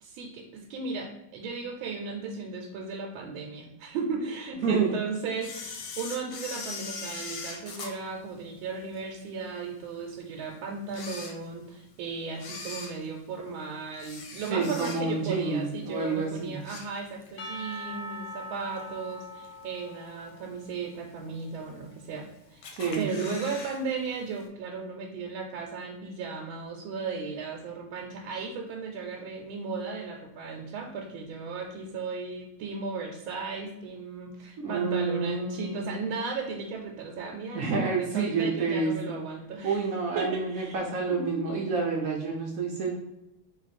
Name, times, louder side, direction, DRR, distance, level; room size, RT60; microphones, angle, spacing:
voice 1, 0.0-22.6 22.9-39.8 40.1-40.9 41.1-41.5, right 4 dB, 90° right, 1 dB, 1.4 m, -36 dB
voice 2, 4.6-5.0 14.5-16.6 22.7-23.1 34.6-36.1 37.5-39.2 39.6-43.0, right 4 dB, 75° right, 0 dB, 0.8 m, -29 dB
Camera, 5.4-9.0 9.5-9.6 10.3-10.4 10.8-11.9 12.3-15.3 15.7-16.0 16.3-17.4 17.7-17.8 18.8-18.9 19.4-19.8 20.3-20.4 20.6-20.7 20.8-20.9 21.7-22.2 22.6-23.8 24.0-24.1 24.4-24.5, left 4 dB, 70° left, 1.3 m, -40 dB
Percussion / Church bell, 17.4-21.6, equal, 85° left, 0.6 m, -42 dB
3.7 x 3.0 x 4.1 m, 0.87 s
omnidirectional pair, 2.2 m